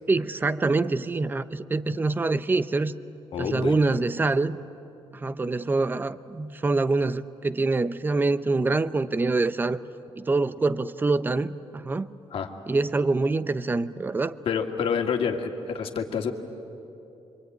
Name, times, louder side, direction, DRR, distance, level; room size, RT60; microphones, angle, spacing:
voice 1, 0.1-2.9 3.4-4.6 5.1-9.8 10.2-12.1 12.7-14.4, right 3 dB, 20° right, 15 dB, 0.6 m, -25 dB
voice 2, 3.3-3.7 12.3-12.5 14.5-16.3, left 6 dB, 60° left, 3 dB, 2.1 m, -28 dB
26.5 x 24.5 x 9.3 m, 2.8 s
cardioid pair, 150°, 11 cm